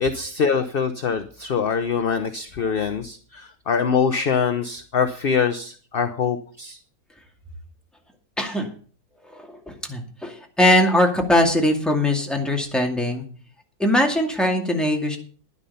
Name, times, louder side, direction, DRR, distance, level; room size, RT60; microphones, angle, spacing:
voice 1, 0.0-6.8, left 6 dB, 50° left, 9 dB, 0.7 m, -24 dB
voice 2, 8.4-8.7 9.3-13.2 13.8-15.2, left 1 dB, ahead, 1 dB, 2.2 m, -21 dB
11.0 x 10.5 x 5.5 m, 0.42 s
omnidirectional pair, 1.8 m